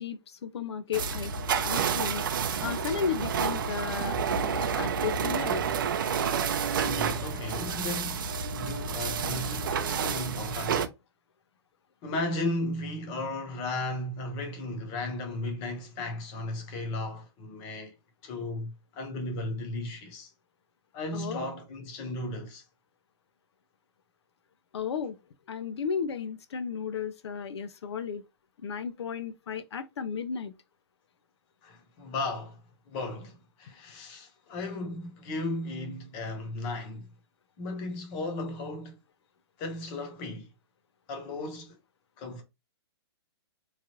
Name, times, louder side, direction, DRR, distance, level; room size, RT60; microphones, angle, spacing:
voice 1, 0.0-1.3 1.6-2.2 2.6-5.7 21.1-21.5 24.7-25.2 25.5-28.3 28.6-30.5, left 7 dB, 75° left, 0.5 m, -34 dB
sound 1, 0.9-10.9, right 6 dB, 50° right, 0.5 m, -29 dB
voice 2, 6.8-10.9 12.0-17.9 18.2-20.3 20.9-22.6 31.6-32.6 32.9-37.1 37.6-39.0 39.6-40.5 41.1-41.8 42.2-42.4, left 2 dB, 20° left, 0.8 m, -35 dB
3.1 x 2.4 x 2.9 m
hypercardioid pair, 170°, 14 cm